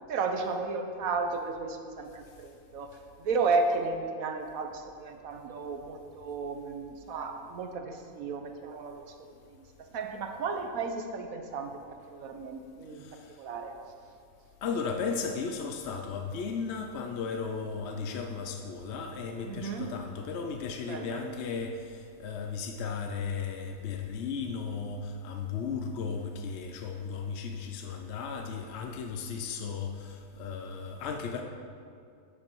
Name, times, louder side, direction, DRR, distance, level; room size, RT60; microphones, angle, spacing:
voice 1, 0.1-9.1 9.5-9.6 9.9-13.1 13.4-13.7 19.4-19.9 20.9-21.2, right 4 dB, 70° right, 5 dB, 1.3 m, -33 dB
voice 2, 13.0-13.3 14.6-31.4, left 5 dB, 60° left, 4 dB, 0.8 m, -35 dB
10.0 x 8.5 x 4.6 m, 2.3 s
omnidirectional pair, 1.6 m